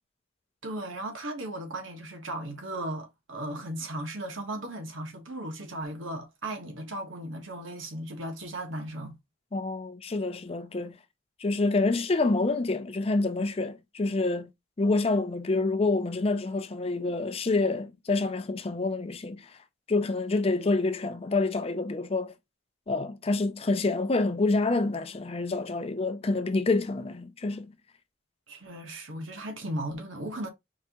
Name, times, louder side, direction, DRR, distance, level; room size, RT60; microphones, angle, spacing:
voice 1, 0.6-9.2 28.5-30.5, right 1 dB, 80° right, 1.4 m, -36 dB
voice 2, 9.5-11.0 11.4-14.5 14.8-19.5 19.9-22.3 22.9-27.8, left 3 dB, 30° left, 0.4 m, -27 dB
4.6 x 3.5 x 3.0 m
head